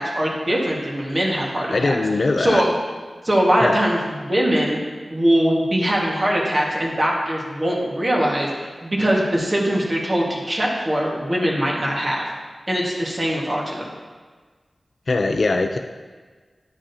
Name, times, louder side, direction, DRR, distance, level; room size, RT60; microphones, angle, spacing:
voice 1, 0.0-2.0 2.4-2.7 3.2-4.8 5.1-12.2 12.7-13.9, equal, 40° right, -3 dB, 1.6 m, -21 dB
voice 2, 1.7-2.7 3.6-3.8 15.1-15.8, left 3 dB, 60° left, 5 dB, 0.4 m, -21 dB
9.7 x 6.1 x 2.8 m, 1.5 s
wide cardioid pair, 55°, 0 cm